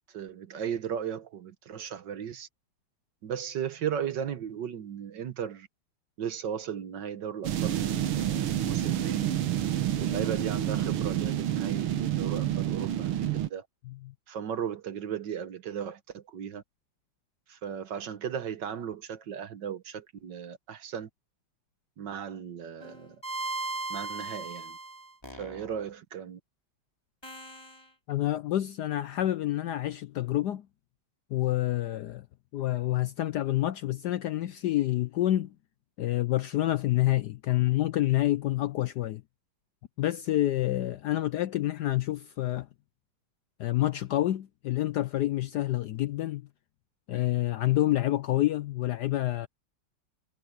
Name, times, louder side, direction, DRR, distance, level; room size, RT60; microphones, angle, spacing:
voice 1, 0.1-2.5 3.2-5.7 6.2-9.3 10.0-13.7 14.3-16.6 17.5-21.1 22.0-23.2 23.9-24.8 25.3-26.4, right 8 dB, 60° right, 1.6 m, -36 dB
sound 1, 7.4-13.5, right 11 dB, 85° right, 2.1 m, -29 dB
sound 2, 22.8-25.9 27.2-27.8, right 2 dB, 10° left, 3.2 m, -37 dB
voice 2, 28.1-30.7 31.3-32.3 32.5-35.5 36.0-39.2 40.0-42.7 43.6-46.5 47.1-49.5, left 14 dB, 75° left, 0.9 m, -28 dB
omnidirectional pair, 2.4 m